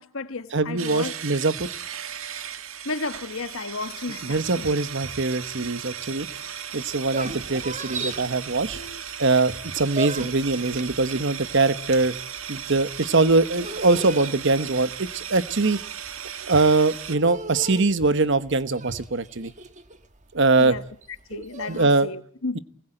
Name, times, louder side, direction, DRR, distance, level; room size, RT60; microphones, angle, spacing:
voice 1, 0.0-1.1 2.8-4.7 8.7-9.0 20.6-20.8 21.3-22.6, left 3 dB, 80° left, 1.4 m, -33 dB
voice 2, 0.5-1.7 4.2-6.3 6.7-8.8 9.2-12.1 12.5-15.8 16.4-19.5 20.3-20.7 21.3-22.1, right 3 dB, 60° right, 1.1 m, -22 dB
sound 1, 0.8-17.2, right 9 dB, 80° right, 1.5 m, -36 dB
sound 2, 6.9-9.2 9.5-21.9, right 3 dB, 35° right, 1.4 m, -37 dB
27.0 x 20.5 x 9.0 m
head